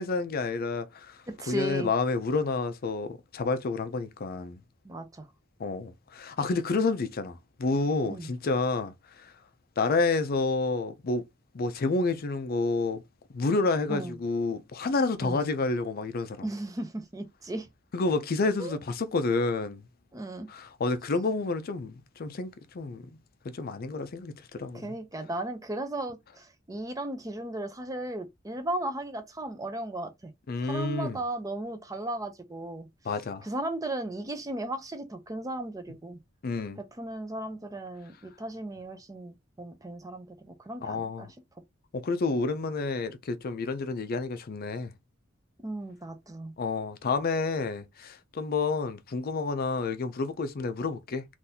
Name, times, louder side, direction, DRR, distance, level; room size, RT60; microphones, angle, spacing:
voice 1, 0.0-1.2 1.5-4.6 5.6-9.3 9.8-11.2 11.5-13.0 13.3-16.4 17.9-19.8 20.5-23.1 23.4-24.9 30.5-31.2 33.1-33.5 36.4-36.8 40.8-41.3 41.9-44.9 46.6-51.3, left 3 dB, 50° left, 0.5 m, -29 dB
voice 2, 1.3-1.9 4.8-5.3 8.1-8.3 13.9-14.2 15.2-15.4 16.4-17.7 18.6-18.8 20.1-20.5 24.7-30.3 30.6-32.9 33.4-36.2 36.9-41.3 45.6-46.5, right 1 dB, 15° right, 0.6 m, -36 dB
3.8 x 2.6 x 2.8 m
head